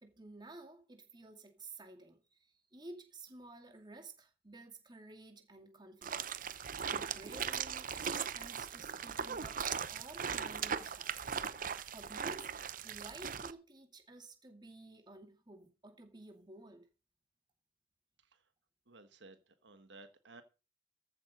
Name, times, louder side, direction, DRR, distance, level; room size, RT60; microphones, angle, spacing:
voice 1, 0.0-11.4 11.9-16.9, right 2 dB, 25° right, 2.3 m, -53 dB
sound 1, 6.0-13.5, right 7 dB, 50° right, 0.7 m, -39 dB
voice 2, 18.9-20.4, right 3 dB, 80° right, 1.4 m, -56 dB
14.0 x 7.3 x 5.1 m
head